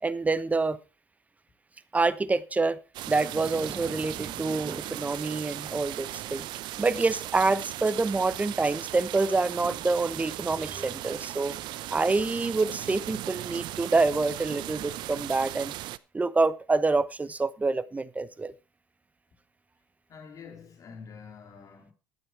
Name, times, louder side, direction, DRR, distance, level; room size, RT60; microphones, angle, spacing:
voice 1, 0.0-0.8 1.9-2.8 3.1-6.5 6.8-11.5 11.9-15.7 16.1-18.5, right 3 dB, 15° right, 0.9 m, -27 dB
sound 1, 2.9-16.0, right 15 dB, 60° right, 0.6 m, -37 dB
voice 2, 20.1-21.9, left 6 dB, 40° left, 3.7 m, -46 dB
12.0 x 8.8 x 4.6 m
hypercardioid pair, 80°, 9 cm